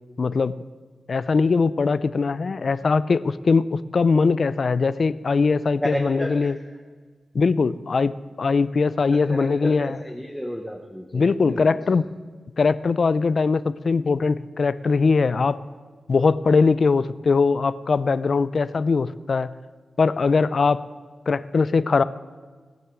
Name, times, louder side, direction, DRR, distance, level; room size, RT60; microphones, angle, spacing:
voice 1, 0.2-0.5 1.1-6.6 7.3-8.1 8.4-10.0 11.1-12.1 12.6-15.6 16.1-19.5 20.0-20.8 21.3-22.0, left 4 dB, 50° left, 16 dB, 0.4 m, -21 dB
voice 2, 5.8-6.5 9.1-11.6 11.9-12.0, equal, ahead, 2 dB, 0.9 m, -31 dB
17.5 x 8.0 x 6.3 m, 1.5 s
wide cardioid pair, 130°, 0 cm